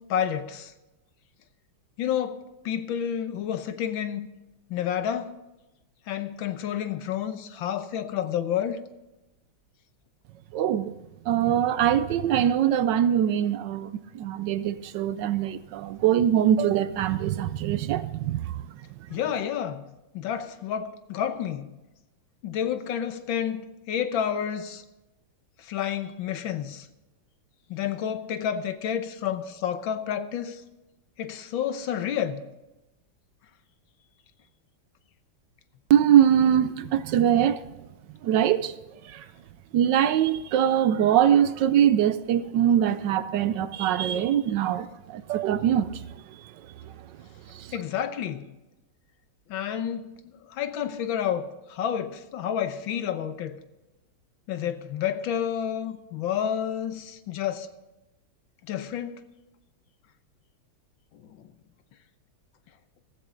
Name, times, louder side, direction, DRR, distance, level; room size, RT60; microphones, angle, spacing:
voice 1, 0.1-0.7 2.0-4.3 4.7-5.3 6.1-8.8 19.1-19.8 20.1-21.7 22.4-24.8 25.7-26.9 27.7-30.6 31.2-32.4 47.7-48.4 49.5-50.1 50.5-53.6 54.5-57.7 58.7-59.1, left 9 dB, 70° left, 1.6 m, -30 dB
voice 2, 10.5-10.9 11.3-18.4 35.9-37.6 38.2-38.7 39.1-39.2 39.7-45.9 47.6-47.7, right 10 dB, 70° right, 1.1 m, -22 dB
15.5 x 14.0 x 3.8 m
omnidirectional pair, 2.3 m